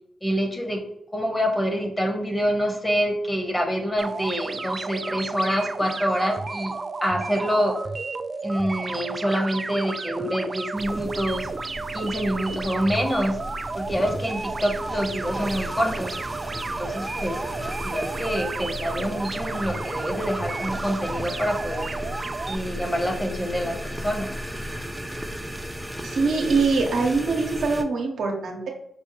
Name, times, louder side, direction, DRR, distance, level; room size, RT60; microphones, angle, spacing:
voice 1, 0.2-0.9 1.1-6.7 7.0-7.8 8.4-11.5 11.9-13.4 13.7-16.2 16.6-17.5 17.8-21.9 22.5-24.3, equal, 15° left, 3 dB, 1.2 m, -26 dB
sound 1, 4.0-22.6, right 3 dB, 45° right, 0.3 m, -32 dB
sound 2, 10.7-27.8, equal, 5° right, 0.6 m, -35 dB
voice 2, 26.0-28.7, right 4 dB, 75° right, 1 dB, 0.8 m, -23 dB
5.4 x 2.1 x 3.1 m, 0.80 s
supercardioid pair, 40°, 0 cm